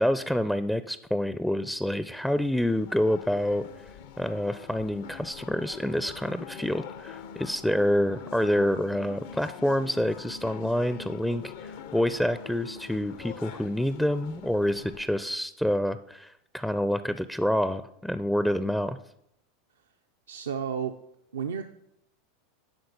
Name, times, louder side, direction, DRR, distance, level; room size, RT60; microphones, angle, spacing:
voice 1, 0.0-3.7 4.2-19.0, equal, 5° left, 12 dB, 0.4 m, -27 dB
sound 1, 2.0-15.1, left 7 dB, 65° left, 0.7 m, -44 dB
voice 2, 20.3-20.9 21.3-21.6, right 7 dB, 80° right, 6 dB, 0.5 m, -31 dB
10.5 x 3.8 x 6.7 m, 0.77 s
hypercardioid pair, 90°, 0 cm